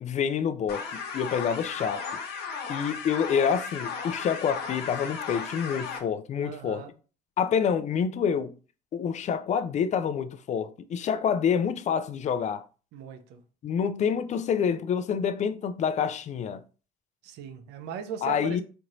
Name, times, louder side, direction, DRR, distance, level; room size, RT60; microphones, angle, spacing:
voice 1, 0.0-2.0 2.7-6.8 7.4-8.5 8.9-12.6 13.6-16.6 18.2-18.6, left 7 dB, 45° left, 0.4 m, -27 dB
sound 1, 0.7-6.0, left 5 dB, 75° left, 1.0 m, -35 dB
voice 2, 6.4-6.9 12.9-13.4 17.2-18.6, right 7 dB, 85° right, 0.6 m, -39 dB
4.3 x 3.0 x 2.6 m
cardioid pair, 110°, 17 cm